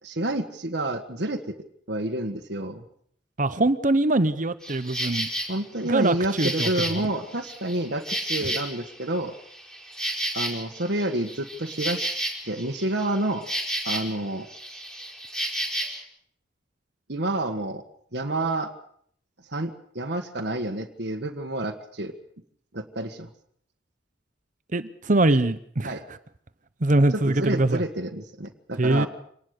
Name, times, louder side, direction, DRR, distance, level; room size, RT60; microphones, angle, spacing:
voice 1, 0.0-1.6 1.9-2.8 5.5-9.3 10.3-13.5 13.8-14.5 17.1-17.8 18.1-18.7 19.5-22.2 22.7-23.3 25.3-25.4 25.8-26.0 27.1-29.1, right 1 dB, 65° right, 2 dB, 1.7 m, -29 dB
voice 2, 3.4-5.3 5.8-6.7 24.7-25.6 25.8-26.0 26.8-27.8 28.8-29.1, right 2 dB, 45° right, 13 dB, 0.9 m, -22 dB
Insect, 4.6-5.5 6.0-9.0 9.3-14.2 14.5-16.0, right 1 dB, 5° left, 4.9 m, -32 dB
25.5 x 19.0 x 6.7 m, 0.64 s
head